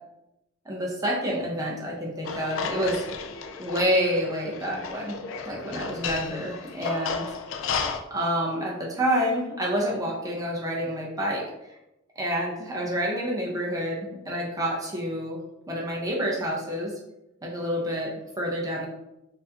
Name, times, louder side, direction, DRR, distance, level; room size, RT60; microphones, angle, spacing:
voice 1, 0.7-3.0 3.6-5.2 5.4-7.2 8.1-11.4 12.2-15.4 15.7-16.9 17.4-18.1 18.4-18.9, equal, 15° right, -3 dB, 0.6 m, -28 dB
sound 1, 2.2-8.0, left 5 dB, 65° left, 0.4 m, -33 dB
4.4 x 2.6 x 2.8 m, 0.90 s
head